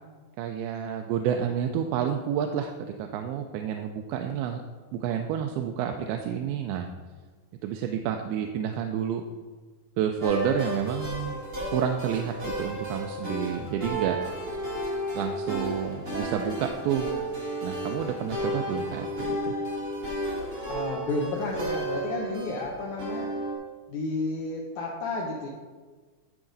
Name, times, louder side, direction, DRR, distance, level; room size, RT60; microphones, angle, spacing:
voice 1, 0.4-4.6 4.9-6.9 7.6-9.2 10.0-11.4 11.7-14.2 15.1-17.1 17.6-19.6, right 9 dB, 85° right, 5 dB, 2.4 m, -29 dB
sound 1, 10.2-23.5, right 1 dB, 60° right, 0.7 m, -33 dB
voice 2, 20.7-23.3 23.9-25.5, left 3 dB, 75° left, -1 dB, 1.8 m, -31 dB
12.0 x 4.8 x 3.9 m, 1.4 s
omnidirectional pair, 4.4 m